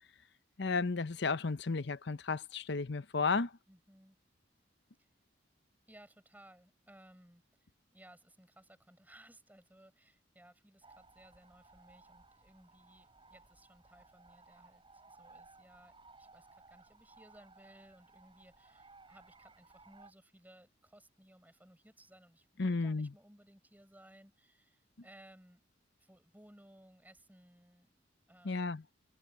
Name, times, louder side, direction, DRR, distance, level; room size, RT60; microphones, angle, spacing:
voice 1, 0.6-3.5 22.6-23.1 28.4-28.8, left 4 dB, 65° left, 0.8 m, -33 dB
voice 2, 3.7-4.2 5.0-5.1 5.9-25.6 26.0-27.9 28.3-28.8, right 1 dB, 10° right, 7.4 m, -61 dB
sound 1, 10.8-20.1, right 3 dB, 30° right, 4.3 m, -60 dB
head